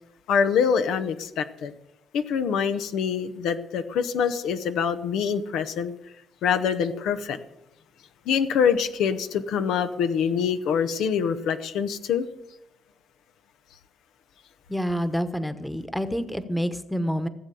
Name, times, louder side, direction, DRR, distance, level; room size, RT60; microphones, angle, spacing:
voice 1, 0.3-1.7 2.1-5.9 6.4-7.4 8.3-12.3, left 7 dB, 85° left, 9 dB, 0.9 m, -25 dB
voice 2, 14.7-17.3, equal, 5° left, 11 dB, 1.1 m, -28 dB
16.5 x 7.8 x 6.9 m, 0.91 s
cardioid pair, 90°, 0 cm